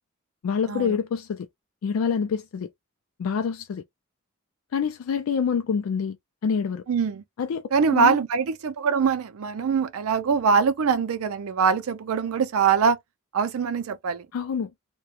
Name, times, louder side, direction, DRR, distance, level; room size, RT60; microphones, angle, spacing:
voice 1, 0.4-1.5 1.8-2.7 3.2-3.8 4.7-6.2 6.4-6.8 7.4-7.6 7.9-8.2 14.3-14.7, left 6 dB, 80° left, 0.3 m, -26 dB
voice 2, 6.9-7.2 7.7-13.0 13.3-14.3, right 6 dB, 80° right, 0.4 m, -23 dB
2.3 x 2.2 x 2.7 m
head